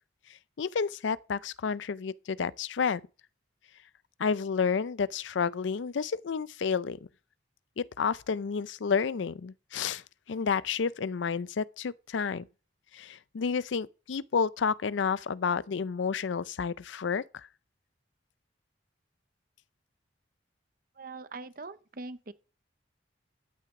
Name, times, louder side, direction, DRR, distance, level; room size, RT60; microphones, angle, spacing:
voice 1, 0.6-3.0 4.2-7.0 7.8-10.0 10.3-12.5 12.9-17.2, left 6 dB, 75° left, 0.5 m, -30 dB
voice 2, 21.0-22.3, right 3 dB, 50° right, 0.8 m, -42 dB
13.0 x 9.1 x 3.6 m
head